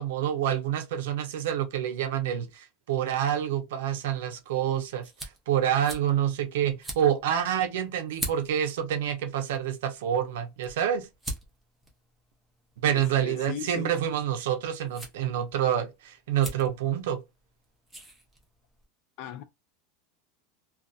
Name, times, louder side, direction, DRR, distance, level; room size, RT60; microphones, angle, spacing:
voice 1, 0.0-5.1 5.5-11.1 12.8-17.2, right 10 dB, 80° right, 0.5 m, -27 dB
sound 1, 4.1-18.8, right 1 dB, 5° right, 0.6 m, -44 dB
voice 2, 12.8-13.9 19.2-19.4, left 9 dB, 40° left, 0.4 m, -38 dB
2.6 x 2.3 x 2.3 m
supercardioid pair, 175°, 0 cm